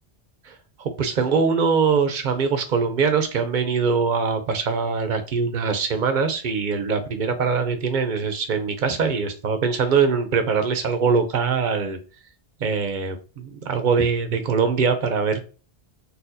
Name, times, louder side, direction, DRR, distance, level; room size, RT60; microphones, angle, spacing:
voice 1, 0.5-12.0 12.6-15.4, right 5 dB, 55° right, 0.6 m, -22 dB
4.0 x 2.3 x 2.6 m
omnidirectional pair, 1.1 m